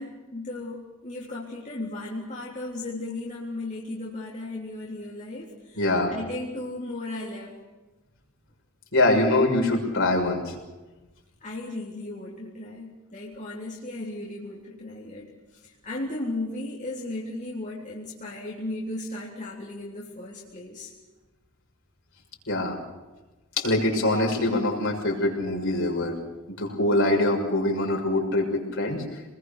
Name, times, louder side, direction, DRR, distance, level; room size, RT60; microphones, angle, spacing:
voice 1, 0.0-7.6 11.4-20.9, left 2 dB, 35° left, -4 dB, 3.6 m, -36 dB
voice 2, 5.8-6.2 8.9-10.5 22.5-22.8 23.6-26.2 26.6-29.0, left 2 dB, 60° left, 1 dB, 6.3 m, -23 dB
27.5 x 21.0 x 6.7 m, 1.2 s
head